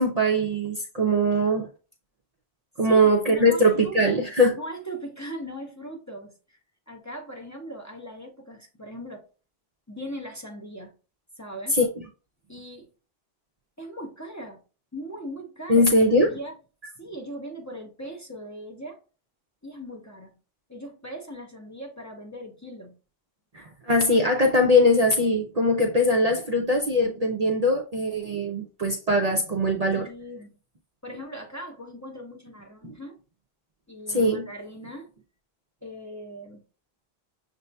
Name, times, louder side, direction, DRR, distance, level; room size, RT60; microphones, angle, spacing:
voice 1, 0.0-1.7 2.8-4.6 11.7-11.9 15.7-16.3 23.5-30.1 32.8-32.9 34.1-34.5, equal, 50° right, 0.6 m, -21 dB
voice 2, 2.8-4.3 4.6-6.6 6.9-9.3 9.9-10.9 11.4-11.8 12.5-12.9 13.8-14.6 14.9-15.9 16.3-16.5 17.0-19.0 19.6-20.3 20.7-23.0 29.9-30.5 31.0-33.2 33.9-35.1 35.8-36.6, right 1 dB, 20° left, 0.7 m, -39 dB
6.6 x 2.7 x 2.2 m
omnidirectional pair, 1.0 m